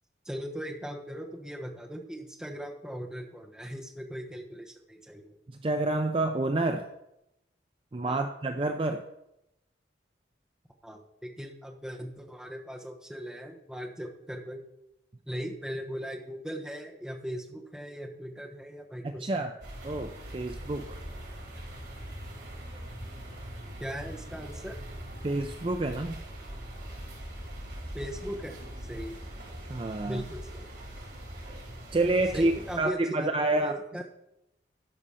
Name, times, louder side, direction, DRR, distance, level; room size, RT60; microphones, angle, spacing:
voice 1, 0.2-5.3 8.1-8.2 10.8-14.6 15.3-19.4 23.8-24.8 27.9-28.6 28.9-29.2 30.1-30.7 32.3-34.0, equal, 5° right, 0 dB, 1.0 m, -39 dB
voice 2, 5.6-6.9 7.9-9.0 19.2-19.5 19.8-21.0 25.2-26.2 29.7-30.2 31.9-33.7, right 2 dB, 30° right, 6 dB, 0.4 m, -28 dB
sound 1, 19.6-32.8, right 1 dB, 70° right, 4.1 m, -42 dB
12.5 x 5.1 x 5.6 m, 0.87 s
head